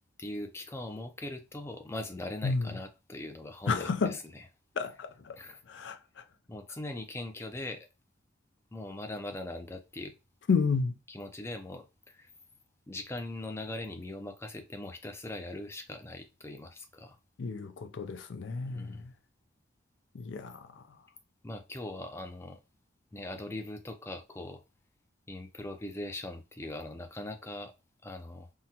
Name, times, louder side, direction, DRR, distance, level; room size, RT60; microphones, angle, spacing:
voice 1, 0.2-4.4 5.4-5.6 6.5-7.9 8.7-10.1 11.1-12.3 12.9-17.2 18.6-19.0 21.4-22.6 23.1-24.6 25.3-27.7 28.0-28.5, left 2 dB, 15° left, 0.4 m, -41 dB
voice 2, 3.7-4.2 4.8-5.4 5.7-6.0 10.5-11.0 17.4-19.1 20.1-20.7, left 5 dB, 70° left, 0.4 m, -31 dB
3.7 x 2.1 x 2.8 m
head